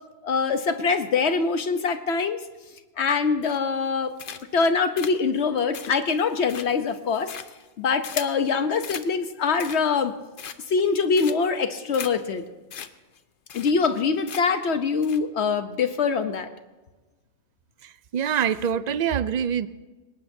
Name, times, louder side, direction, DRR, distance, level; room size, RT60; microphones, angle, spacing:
voice 1, 0.2-2.4 3.0-4.1 4.5-7.3 7.8-10.1 10.7-12.4 13.5-16.5, left 5 dB, 70° left, 9 dB, 1.1 m, -24 dB
sound 1, 3.4-3.8 4.2-4.6 5.0-8.4 8.8-9.1 9.5-10.0 10.4-10.8 11.2-11.6 11.9-12.1 12.4-12.5 12.7-12.9 13.2-13.3 13.5-14.0 14.3-14.6 15.0-15.2, left 8 dB, 55° left, 0.8 m, -38 dB
voice 2, 17.8-19.7, right 8 dB, 55° right, 15 dB, 0.5 m, -25 dB
21.5 x 19.0 x 2.7 m, 1.2 s
omnidirectional pair, 1.2 m